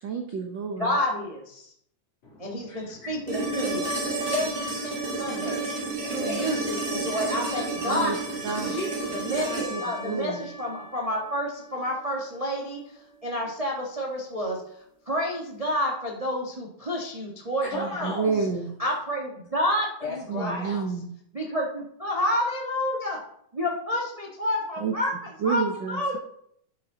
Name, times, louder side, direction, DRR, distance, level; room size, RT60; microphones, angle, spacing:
voice 1, 0.0-1.0 7.9-8.2 8.4-8.7 9.5-10.5 17.7-18.7 20.3-21.1 24.8-24.9 25.4-26.0, right 5 dB, 70° right, 3 dB, 1.1 m, -29 dB
voice 2, 0.8-1.7 2.4-3.8 4.3-4.9 5.2-5.6 6.1-8.6 9.2-9.5 9.8-12.8 13.2-14.6 15.1-18.1 18.8-20.8 21.3-23.2 23.5-25.1 25.4-26.2, left 1 dB, 45° right, -1 dB, 0.4 m, -29 dB
voice 3, 2.2-4.4 4.7-7.0 7.4-7.7 8.5-9.8 17.6-18.5 20.0-20.7, left 2 dB, 60° left, -5 dB, 4.6 m, -38 dB
sound 1, 3.3-11.3 13.4-13.5, right 2 dB, 20° right, 1.8 m, -31 dB
11.5 x 6.4 x 3.9 m, 0.69 s
omnidirectional pair, 3.4 m